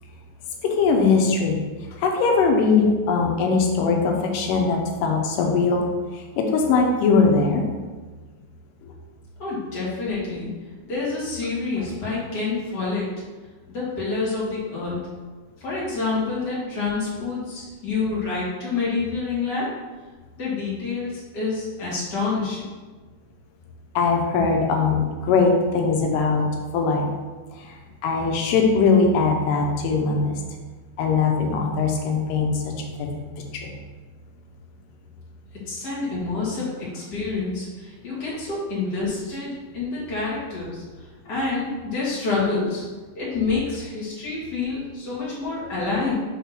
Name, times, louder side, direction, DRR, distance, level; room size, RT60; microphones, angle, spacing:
voice 1, 0.6-1.6 2.0-5.9 6.1-7.6 11.8-11.9 24.0-26.4 26.7-27.1 27.6-27.8 28.0-30.4 31.0-33.1 33.5-33.7, left 4 dB, 90° left, 2 dB, 2.5 m, -21 dB
voice 2, 9.4-10.5 10.8-13.1 13.7-15.0 15.6-19.7 20.4-22.6 35.7-40.8 41.2-42.8 43.1-46.1, left 4 dB, 35° left, -7 dB, 2.3 m, -27 dB
5.8 x 3.7 x 5.8 m, 1.3 s
omnidirectional pair, 3.7 m